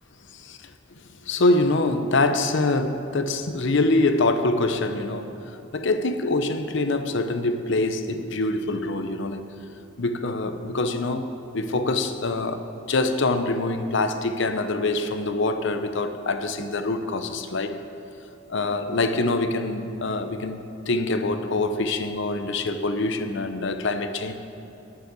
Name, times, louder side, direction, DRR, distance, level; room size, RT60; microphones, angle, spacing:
voice 1, 1.3-5.4 5.7-9.4 10.0-17.7 18.5-24.4, left 2 dB, 65° left, 8 dB, 0.7 m, -25 dB
9.3 x 7.0 x 8.3 m, 3.0 s
head